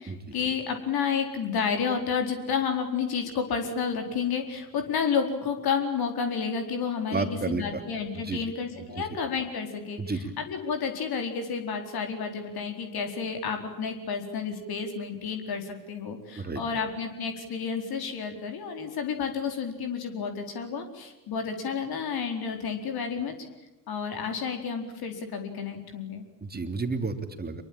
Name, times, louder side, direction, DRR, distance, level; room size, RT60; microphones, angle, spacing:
voice 1, 0.0-23.5 23.9-26.2, left 6 dB, 45° left, 5 dB, 4.4 m, -31 dB
voice 2, 7.1-7.8 8.1-8.4 10.0-10.3 16.4-16.6 26.4-27.6, right 3 dB, 20° right, 8 dB, 3.2 m, -31 dB
26.5 x 23.0 x 8.9 m, 1.0 s
figure-of-eight pair, 60°, 49 cm